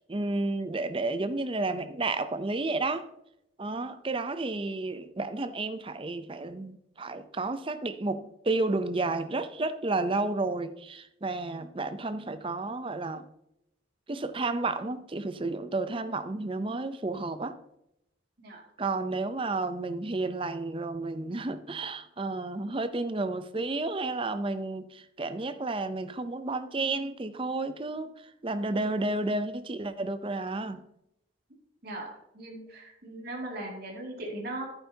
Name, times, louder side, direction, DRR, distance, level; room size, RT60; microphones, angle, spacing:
voice 1, 0.0-3.1 3.6-13.3 14.1-17.6 18.8-28.1 28.4-30.8, right 2 dB, 25° right, 11 dB, 0.5 m, -31 dB
voice 2, 32.3-34.7, right 1 dB, 50° right, -2 dB, 2.4 m, -38 dB
11.0 x 9.0 x 2.8 m, 0.81 s
head